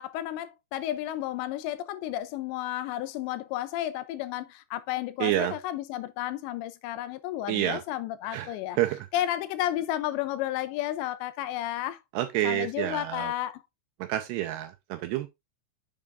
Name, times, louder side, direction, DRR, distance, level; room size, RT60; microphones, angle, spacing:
voice 1, 0.0-8.8 9.1-12.0 12.4-13.6, left 13 dB, 85° left, 2.6 m, -32 dB
voice 2, 5.2-5.5 7.5-7.8 8.3-9.1 12.1-13.3 14.0-15.3, right 14 dB, 85° right, 2.4 m, -29 dB
7.7 x 7.0 x 2.4 m
omnidirectional pair, 5.4 m